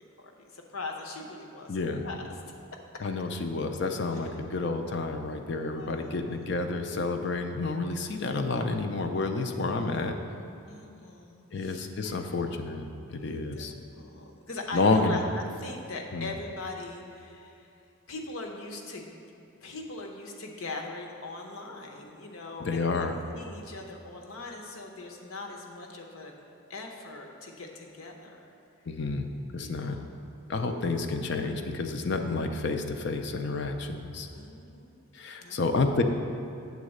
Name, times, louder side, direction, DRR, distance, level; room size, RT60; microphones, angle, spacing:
voice 1, 0.2-2.2 4.2-4.3 5.8-6.4 9.8-9.9 10.7-12.4 13.2-15.2 15.6-17.7 18.1-19.1 19.6-23.1 23.3-26.4 26.7-28.5 29.6-30.0 30.5-30.8 34.3-34.9 35.4-35.6, left 3 dB, 80° left, 1 dB, 0.9 m, -41 dB
voice 2, 1.7-2.0 3.0-10.2 11.5-13.7 14.7-15.2 16.1-16.3 22.6-23.2 28.9-29.3 29.5-30.0 30.5-34.3 35.1-36.0, left 3 dB, 55° left, 6 dB, 0.5 m, -29 dB
8.3 x 4.0 x 6.5 m, 2.7 s
head